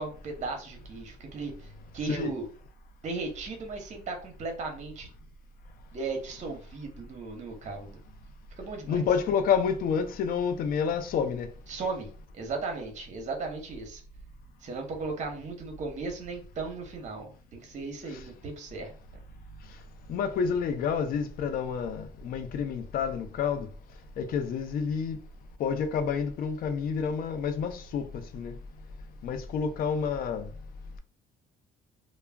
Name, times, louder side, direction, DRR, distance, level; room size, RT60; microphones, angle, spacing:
voice 1, 0.0-1.7 1.9-2.5 3.0-5.1 5.9-7.9 8.6-9.0 11.7-12.1 12.3-14.0 14.6-18.9, right 3 dB, 45° right, 0.8 m, -36 dB
voice 2, 8.9-11.5 20.1-23.7 24.2-25.2 25.6-28.1 28.3-28.5 29.2-30.5, left 6 dB, 60° left, 0.5 m, -29 dB
2.2 x 2.1 x 3.4 m
cardioid pair, 110°, 17 cm